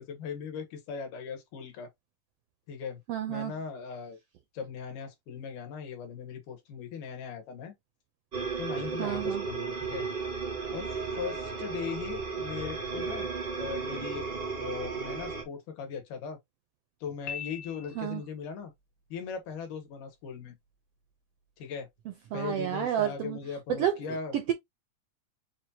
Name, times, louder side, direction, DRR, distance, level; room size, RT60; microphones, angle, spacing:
voice 1, 0.0-1.9 2.7-3.0 3.3-4.2 4.5-7.7 8.6-10.1 10.7-13.3 13.6-14.3 14.6-16.4 17.0-18.7 19.1-20.6 21.6-21.9 22.3-24.4, left 6 dB, 85° left, 2.7 m, -39 dB
voice 2, 3.1-3.5 9.0-9.5 18.0-18.2 22.1-23.4 23.7-24.0 24.3-24.5, right 10 dB, 85° right, 1.4 m, -30 dB
sound 1, 8.3-15.4, right 5 dB, 60° right, 0.6 m, -34 dB
Piano, 17.3-18.4, left 8 dB, 65° left, 1.4 m, -41 dB
6.1 x 2.3 x 2.7 m
omnidirectional pair, 3.5 m